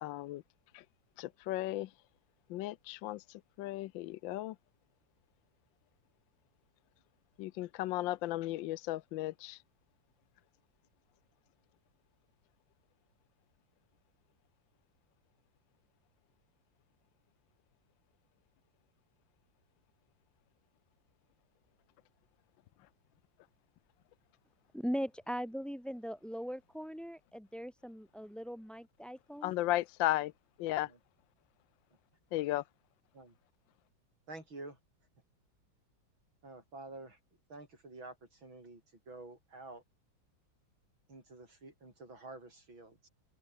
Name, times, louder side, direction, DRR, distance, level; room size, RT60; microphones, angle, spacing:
voice 1, 0.0-0.4 0.7-0.8 1.2-1.9 2.5-4.6 7.4-9.6 29.4-30.3 30.6-30.9 32.3-32.6, left 15 dB, 80° left, 1.3 m, -35 dB
voice 2, 24.7-29.5, equal, ahead, 4.9 m, -40 dB
voice 3, 34.3-34.8 36.4-37.2 37.5-39.8 41.1-43.1, right 2 dB, 85° right, 8.5 m, -49 dB
omnidirectional pair, 2.1 m